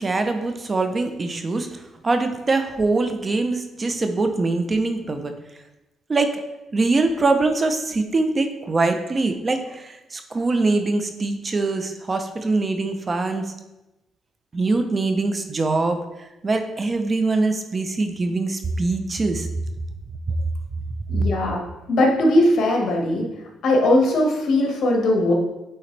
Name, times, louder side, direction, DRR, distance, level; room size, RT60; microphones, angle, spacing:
voice 1, 0.0-1.8 2.0-5.3 6.1-6.3 6.7-13.5 14.5-16.1 16.4-19.5 21.1-21.2, right 3 dB, 30° right, 7 dB, 0.7 m, -23 dB
voice 2, 21.1-21.6 21.9-23.3 23.6-25.3, left 1 dB, 65° left, 0 dB, 1.6 m, -19 dB
9.0 x 4.1 x 3.3 m, 0.98 s
cardioid pair, 90°, 0 cm